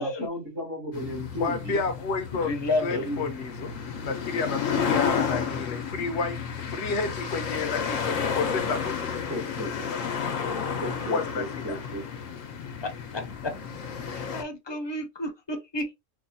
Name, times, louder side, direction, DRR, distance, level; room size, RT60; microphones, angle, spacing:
voice 1, 0.0-1.8 2.9-3.3 9.3-9.9 10.8-12.0, equal, 70° right, 2.4 m, -34 dB
sound 1, 0.9-14.4, left 6 dB, 90° left, 1.1 m, -31 dB
voice 2, 1.4-2.5 2.8-3.7 4.0-10.4 11.1-11.8, left 4 dB, 65° left, 0.9 m, -31 dB
voice 3, 2.3-3.1 12.8-12.9 14.1-15.9, left 2 dB, 30° left, 0.6 m, -31 dB
4.6 x 2.3 x 2.7 m
omnidirectional pair, 1.3 m